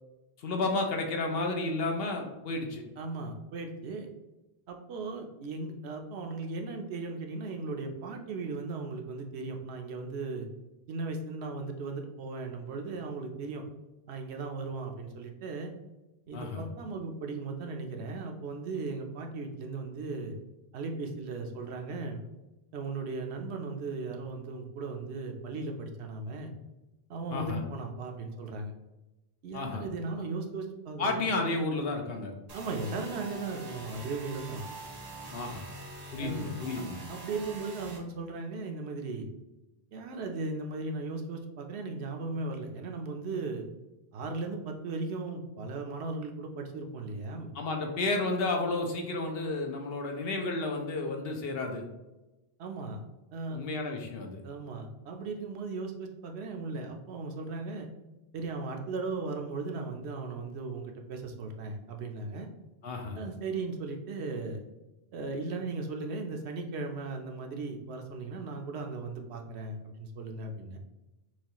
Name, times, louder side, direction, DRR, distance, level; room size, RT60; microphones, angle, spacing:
voice 1, 0.4-2.8 16.3-16.6 27.3-27.6 29.5-29.8 31.0-32.3 35.3-35.7 36.1-37.0 47.5-51.8 53.5-54.4 62.8-63.2, left 2 dB, 65° left, 3 dB, 0.9 m, -32 dB
voice 2, 3.0-4.1 4.7-10.5 10.9-13.6 14.1-15.7 16.3-20.3 20.7-22.2 22.7-26.5 27.1-28.7 29.4-31.2 32.5-34.7 36.2-36.6 37.1-39.3 39.9-43.6 44.1-47.5 52.6-53.0 53.3-53.6 54.4-57.9 58.3-62.5 63.1-64.6 65.1-70.8, right 3 dB, 90° right, 3 dB, 0.9 m, -37 dB
sound 1, 32.5-38.0, right 3 dB, 40° right, 0.8 m, -44 dB
6.1 x 2.4 x 2.9 m, 1.0 s
omnidirectional pair, 1.1 m